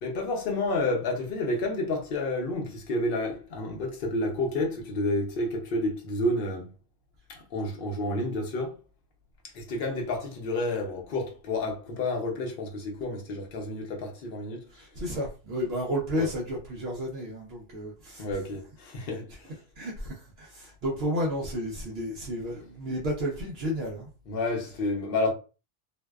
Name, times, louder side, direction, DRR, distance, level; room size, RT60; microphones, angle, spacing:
voice 1, 0.0-6.7 7.3-8.7 9.5-14.7 16.2-16.3 18.2-19.5 24.3-25.3, left 2 dB, 55° left, 0.8 m, -30 dB
voice 2, 14.7-18.3 19.3-19.4 19.8-24.1, equal, 65° right, 0.8 m, -32 dB
2.5 x 2.2 x 2.2 m
omnidirectional pair, 1.2 m